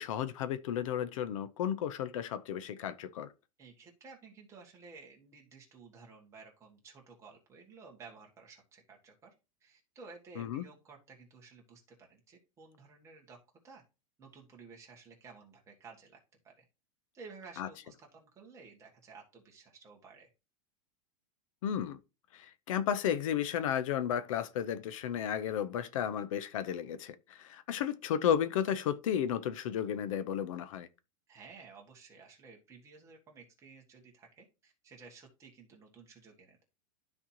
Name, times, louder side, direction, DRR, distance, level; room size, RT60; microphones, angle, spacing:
voice 1, 0.0-3.3 10.4-10.6 17.6-17.7 21.6-22.0 22.3-30.9, left 9 dB, 65° left, 0.6 m, -33 dB
voice 2, 3.6-9.3 9.6-11.8 12.1-13.4 13.6-13.8 14.2-16.2 16.4-16.5 17.1-20.3 31.3-36.6, right 4 dB, 15° right, 1.7 m, -54 dB
12.5 x 4.3 x 2.8 m
supercardioid pair, 170°, 18 cm